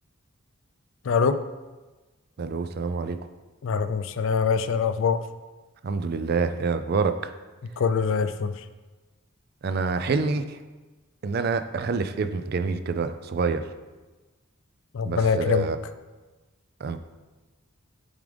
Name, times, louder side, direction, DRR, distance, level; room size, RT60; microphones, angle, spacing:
voice 1, 1.0-1.4 3.6-5.2 7.8-8.6 14.9-15.7, left 5 dB, 65° left, 11 dB, 0.4 m, -24 dB
voice 2, 2.4-3.2 5.8-7.3 9.6-10.6 11.2-13.7 15.1-15.8 16.8-17.0, right 4 dB, 45° right, 10 dB, 0.4 m, -27 dB
7.0 x 3.7 x 5.1 m, 1.2 s
head